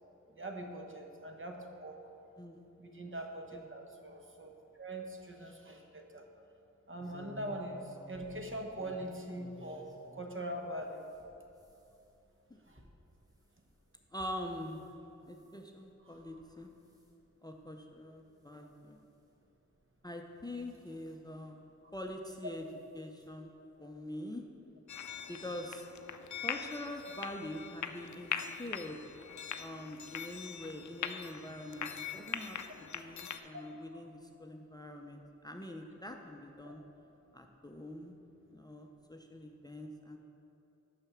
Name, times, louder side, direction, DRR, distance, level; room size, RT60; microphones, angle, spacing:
voice 1, 0.3-1.9 2.8-6.3 6.9-11.1 12.7-12.8 16.1-16.4 33.5-33.6 36.6-36.7, right 1 dB, 45° right, 3 dB, 0.9 m, -42 dB
sound 1, 7.0-10.3 10.8-14.9 15.3-15.7 16.2-16.5 16.8-17.1 17.7-17.8 18.2-18.3 19.4-19.5 20.3-21.1 22.2-22.4 22.8-22.9 23.2-23.3, left 1 dB, 10° right, 1.1 m, -55 dB
voice 2, 14.1-14.8 15.3-16.7 17.4-19.0 20.0-21.6 21.9-22.6 22.9-23.5 23.8-24.4 25.3-25.8 26.4-29.0 29.6-32.6 32.9-36.8 37.3-38.1 38.5-40.2, left 1 dB, 15° left, 3 dB, 0.5 m, -44 dB
sound 2, 24.9-33.4, left 8 dB, 75° left, 0.4 m, -42 dB
6.7 x 5.8 x 5.9 m, 2.9 s
wide cardioid pair, 55°, 29 cm